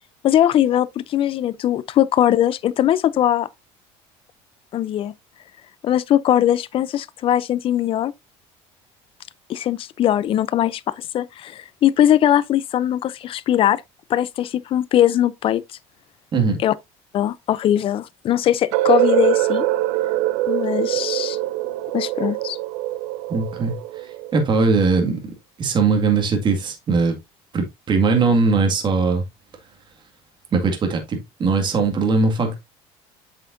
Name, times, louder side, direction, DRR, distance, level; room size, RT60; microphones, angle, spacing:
voice 1, 0.2-3.5 4.7-5.1 5.8-8.1 9.5-13.8 14.1-15.6 16.6-16.7 17.1-19.7 20.5-21.4 21.9-22.6, left 11 dB, 40° left, 0.5 m, -20 dB
sound 1, 18.7-24.6, right 15 dB, 85° right, 0.6 m, -23 dB
voice 2, 23.3-24.1 24.3-25.2 25.6-27.1 27.5-29.2 30.5-32.6, right 4 dB, 35° right, 1.9 m, -20 dB
8.0 x 5.7 x 2.6 m
cardioid pair, 115°, 14 cm